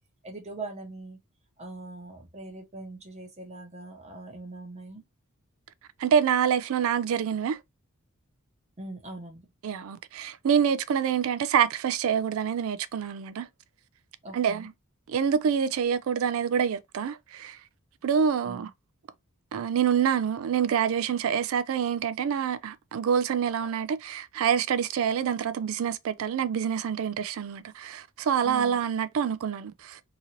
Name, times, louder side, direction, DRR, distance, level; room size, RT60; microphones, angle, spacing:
voice 1, 0.2-1.2 1.6-5.0 8.8-9.4 14.2-14.7 18.5-18.7 28.4-28.8, right 2 dB, 30° right, 0.8 m, -41 dB
voice 2, 6.0-7.6 9.6-13.5 14.3-14.7 15.1-17.6 18.0-18.7 19.5-30.0, right 7 dB, 65° right, 0.3 m, -26 dB
2.9 x 2.5 x 2.8 m
head